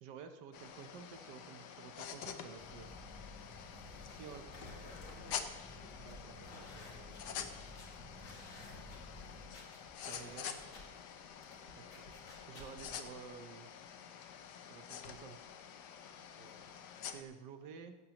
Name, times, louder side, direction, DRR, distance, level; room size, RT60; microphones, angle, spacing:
voice 1, 0.0-2.9 4.0-4.4 10.1-10.6 11.8-11.9 12.5-13.7 14.7-15.4 17.1-18.0, right 6 dB, 85° right, 8 dB, 1.5 m, -51 dB
sound 1, 0.5-17.2, left 8 dB, 80° left, 1.4 m, -48 dB
sound 2, 2.6-9.5, left 1 dB, ahead, 3.0 m, -54 dB
sound 3, 3.8-13.0, left 2 dB, 50° left, 2.4 m, -57 dB
voice 2, 3.9-7.7 10.2-10.4 11.5-12.2 16.4-16.6, right 2 dB, 40° right, 1 dB, 1.2 m, -60 dB
16.0 x 12.5 x 3.0 m, 1.2 s
omnidirectional pair, 1.8 m